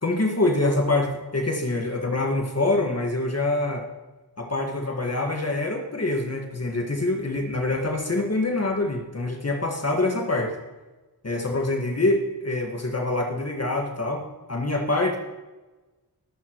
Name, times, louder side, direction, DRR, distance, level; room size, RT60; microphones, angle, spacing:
voice 1, 0.0-3.9 4.4-10.5 11.2-15.2, left 2 dB, 40° left, 2 dB, 1.7 m, -25 dB
20.0 x 8.5 x 3.1 m, 1.2 s
cardioid pair, 60°, 40 cm